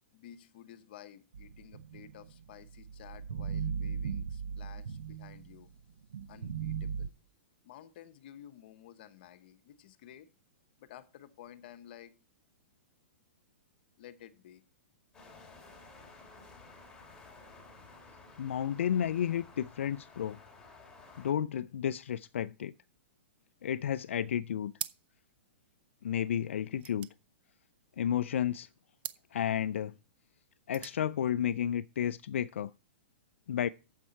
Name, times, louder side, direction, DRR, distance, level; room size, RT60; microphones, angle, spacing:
voice 1, 0.1-5.7 6.3-7.1 7.6-10.3 10.8-12.1 14.0-14.6, left 10 dB, 50° left, 1.1 m, -53 dB
sound 1, 1.3-5.7 6.1-7.1, right 6 dB, 85° right, 0.7 m, -38 dB
sound 2, 15.1-21.3, left 3 dB, 10° left, 2.7 m, -54 dB
voice 2, 18.4-20.4 21.2-22.7 23.6-24.7 26.0-27.1 28.0-28.7 29.3-29.9 30.7-32.7 33.5-33.7, left 9 dB, 80° left, 0.4 m, -32 dB
sound 3, 24.7-25.3 25.6-25.7 25.9-28.1 28.9-29.3 30.4-31.0, right 11 dB, 20° right, 0.5 m, -43 dB
10.0 x 7.4 x 4.4 m
hypercardioid pair, 155°, 7 cm